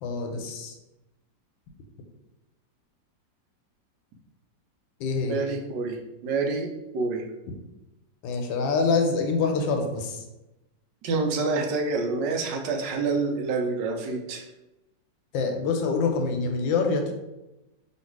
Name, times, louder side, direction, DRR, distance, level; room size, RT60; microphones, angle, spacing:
voice 1, 0.0-0.7 5.0-5.4 8.2-10.2 15.3-17.1, left 4 dB, 85° left, 4 dB, 1.4 m, -25 dB
voice 2, 5.2-6.7 6.9-7.2 11.0-14.4, right 4 dB, 75° right, 2 dB, 1.3 m, -27 dB
3.1 x 2.8 x 4.5 m, 0.98 s
omnidirectional pair, 2.0 m